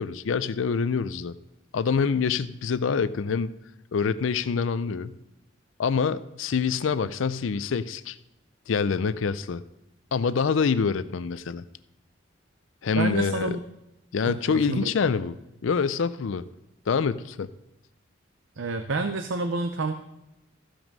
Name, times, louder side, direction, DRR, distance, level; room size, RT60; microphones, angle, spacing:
voice 1, 0.0-1.3 1.7-3.6 3.9-5.1 5.8-8.2 8.7-9.6 10.1-11.6 12.8-13.6 14.1-15.4 15.6-16.4 16.9-17.5, left 5 dB, 85° left, 15 dB, 0.5 m, -26 dB
voice 2, 13.0-13.6 14.3-14.9 18.6-19.9, right 3 dB, 80° right, 7 dB, 0.7 m, -29 dB
14.5 x 6.0 x 5.3 m, 0.92 s
head